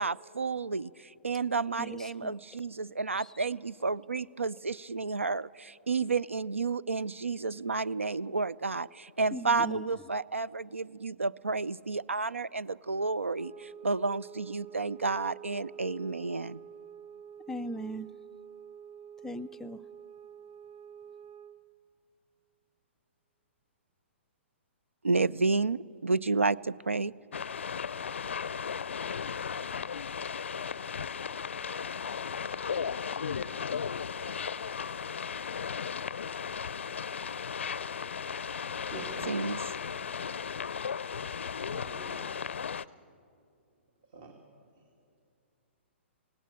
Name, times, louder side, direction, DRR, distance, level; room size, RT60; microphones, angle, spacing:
voice 1, 0.0-16.6 25.0-27.1 39.3-39.6, right 4 dB, 90° right, 20 dB, 0.4 m, -31 dB
voice 2, 1.8-2.4 3.2-3.3 9.3-9.9 17.5-18.1 19.2-19.8, equal, 5° left, 8 dB, 0.4 m, -39 dB
sound 1, 13.3-21.7, right 8 dB, 25° right, 0.8 m, -48 dB
sound 2, 27.3-42.8, left 6 dB, 70° left, 0.4 m, -36 dB
voice 3, 38.9-39.6 41.6-42.3 44.0-44.3, right 4 dB, 45° right, 3 dB, 2.3 m, -46 dB
18.0 x 17.5 x 8.8 m, 2.5 s
figure-of-eight pair, 120°, 7 cm